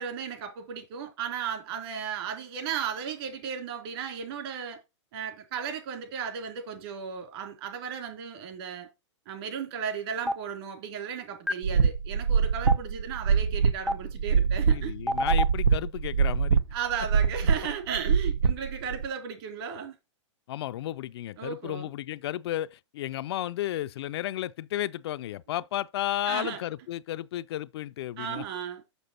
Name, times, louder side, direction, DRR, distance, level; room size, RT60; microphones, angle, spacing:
voice 1, 0.0-4.8 5.1-8.9 9.3-14.9 16.7-20.0 21.4-21.9 26.2-26.6 28.2-28.8, right 7 dB, 55° right, 3.3 m, -35 dB
Stream, 10.3-10.4 11.5-11.6 12.7-12.8 13.9-14.0 15.1-15.4, left 1 dB, 5° right, 0.4 m, -25 dB
sound 1, 11.6-19.1, right 6 dB, 90° right, 0.9 m, -24 dB
voice 2, 14.7-16.6 20.5-28.4, left 13 dB, 60° left, 0.4 m, -33 dB
6.8 x 6.4 x 4.3 m
hypercardioid pair, 125°, 16 cm